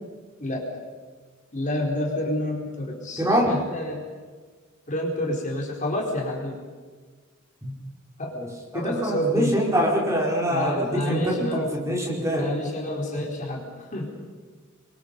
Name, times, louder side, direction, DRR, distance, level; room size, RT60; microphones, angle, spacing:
voice 1, 1.5-4.1 4.9-6.6 8.2-8.4 8.7-9.6 10.5-11.6 12.3-14.2, left 1 dB, 40° left, -1 dB, 4.4 m, -29 dB
voice 2, 3.2-3.5 7.6-7.7 8.3-12.5, equal, 15° right, -2 dB, 4.8 m, -25 dB
28.5 x 23.5 x 5.4 m, 1.5 s
head